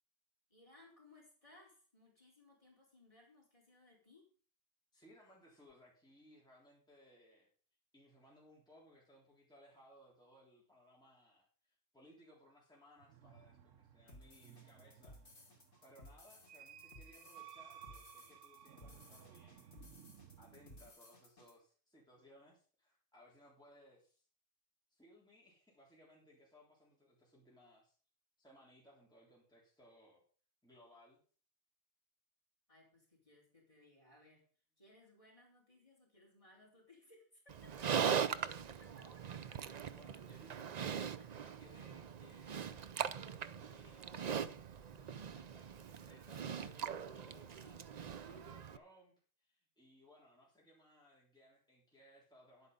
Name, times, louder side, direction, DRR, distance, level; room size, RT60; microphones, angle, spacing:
voice 1, 0.5-4.3 32.7-34.4 34.8-38.1 38.8-40.0 41.2-41.3, left 1 dB, 25° left, -2 dB, 4.4 m, -64 dB
voice 2, 4.9-7.5 7.9-19.8 20.4-24.3 24.9-28.0 28.4-30.2 30.6-31.2 37.9-38.6 39.9-40.8 41.3-44.5 45.0-52.7, equal, 5° left, -5 dB, 3.5 m, -64 dB
sound 1, 13.0-20.9, right 9 dB, 85° right, 1.2 m, -58 dB
sound 2, 14.1-21.5, left 1 dB, 65° left, 3.0 m, -59 dB
Livestock farm animals working animals, 37.5-48.8, right 7 dB, 50° right, 0.5 m, -41 dB
11.0 x 8.8 x 5.4 m, 0.42 s
omnidirectional pair, 1.3 m